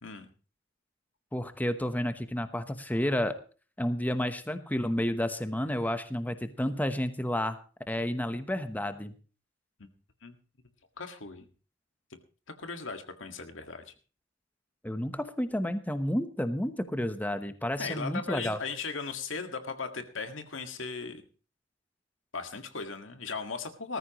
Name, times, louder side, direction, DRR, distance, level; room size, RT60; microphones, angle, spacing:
voice 1, 1.3-3.4 3.8-7.6 7.9-9.1 14.8-18.6, left 1 dB, 10° left, 9 dB, 1.0 m, -31 dB
voice 2, 11.0-11.5 12.6-13.9 17.8-21.2 22.3-24.0, left 4 dB, 90° left, 7 dB, 1.9 m, -37 dB
19.5 x 14.0 x 3.1 m, 0.37 s
head